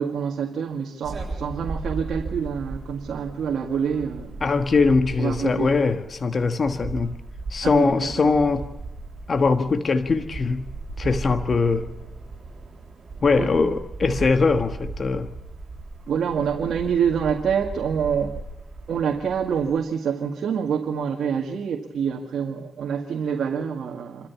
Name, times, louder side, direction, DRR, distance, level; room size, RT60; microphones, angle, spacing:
voice 1, 0.0-4.4 5.2-5.7 7.6-8.3 13.4-13.5 16.1-18.4 18.9-24.3, right 7 dB, 80° right, 1.9 m, -26 dB
sound 1, 1.0-19.7, right 3 dB, 50° right, 7.6 m, -36 dB
voice 2, 4.4-7.2 7.5-8.7 9.3-10.7 11.0-11.9 13.2-15.3, left 4 dB, 50° left, 1.6 m, -21 dB
27.0 x 13.5 x 7.1 m
cardioid pair, 85°, 0 cm